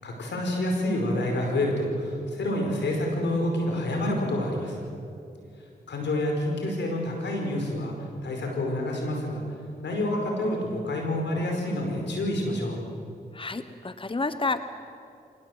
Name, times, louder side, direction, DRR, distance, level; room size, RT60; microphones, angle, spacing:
voice 1, 0.0-4.8 5.9-7.9 8.2-9.4 9.8-12.8, left 1 dB, 90° left, 1 dB, 5.1 m, -28 dB
voice 2, 13.3-14.6, left 3 dB, 30° left, 11 dB, 1.1 m, -29 dB
25.5 x 19.0 x 8.0 m, 2.6 s
cardioid pair, 45°, 18 cm